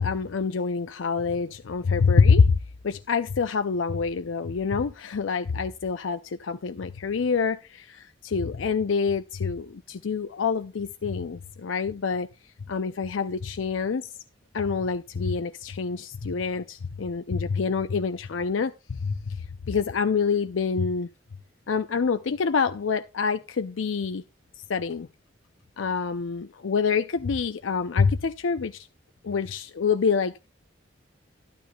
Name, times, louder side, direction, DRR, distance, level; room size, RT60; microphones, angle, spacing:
voice 1, 0.0-2.6 2.8-12.3 12.7-14.1 14.5-21.1 21.7-24.2 24.7-25.1 25.8-28.9 29.2-30.5, left 5 dB, 90° left, 0.5 m, -26 dB
12.0 x 12.0 x 2.3 m
head